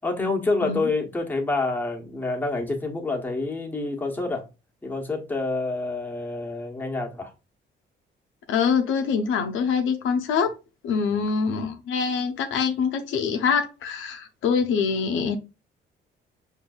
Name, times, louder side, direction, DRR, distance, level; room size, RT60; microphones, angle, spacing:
voice 1, 0.0-4.4 4.8-7.3 11.1-11.3, left 3 dB, 10° left, 1.1 m, -27 dB
voice 2, 8.5-10.5 10.8-15.4, left 6 dB, 80° left, 0.6 m, -24 dB
5.3 x 2.6 x 2.3 m
cardioid pair, 90°, 20 cm